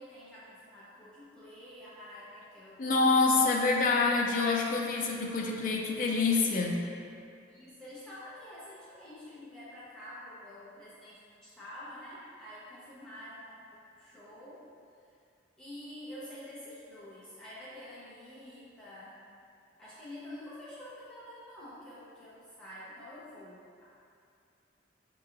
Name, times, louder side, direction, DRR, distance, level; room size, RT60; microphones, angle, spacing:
voice 1, 0.0-3.7 7.5-14.6 15.6-19.2 19.8-23.9, left 1 dB, 5° left, -11 dB, 0.7 m, -48 dB
voice 2, 2.8-6.8, left 3 dB, 45° left, 0 dB, 0.4 m, -26 dB
6.2 x 2.8 x 2.5 m, 2.5 s
head